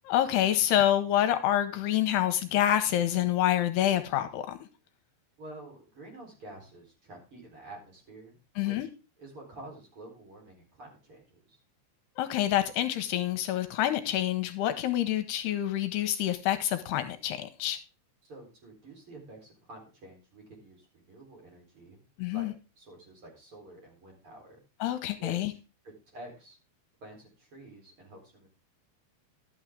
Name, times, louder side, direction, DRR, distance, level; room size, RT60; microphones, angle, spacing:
voice 1, 0.0-4.6 8.6-8.9 12.2-17.8 22.2-22.5 24.8-25.5, left 12 dB, 80° left, 9 dB, 2.8 m, -27 dB
voice 2, 5.4-8.9 9.2-11.6 18.2-22.0 22.3-22.5 22.8-24.6 25.2-25.6 25.8-26.6 27.0-28.5, right 1 dB, 30° right, -1 dB, 4.6 m, -49 dB
12.0 x 8.8 x 3.7 m, 0.32 s
omnidirectional pair, 4.9 m